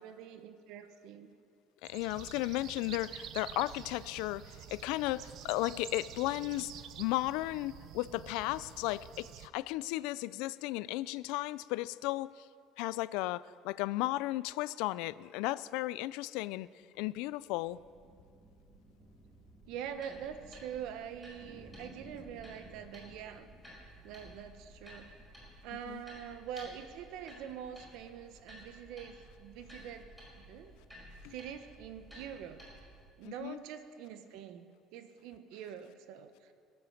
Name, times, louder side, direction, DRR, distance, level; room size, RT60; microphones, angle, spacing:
voice 1, 0.0-1.3 19.7-25.1 25.6-32.6 33.2-36.5, right 9 dB, 70° right, 9 dB, 1.0 m, -45 dB
voice 2, 1.8-6.7 7.0-12.5 12.8-16.7 17.0-17.8 25.9-26.0 31.2-31.3 33.2-33.6, left 18 dB, 85° left, 18 dB, 0.3 m, -35 dB
sound 1, 1.8-9.5, right 10 dB, 50° right, 0.6 m, -48 dB
sound 2, 17.2-25.7, right 1 dB, 25° right, 1.9 m, -58 dB
sound 3, 19.8-33.0, equal, ahead, 4.9 m, -54 dB
22.0 x 7.8 x 7.2 m, 2.2 s
cardioid pair, 165°, 0 cm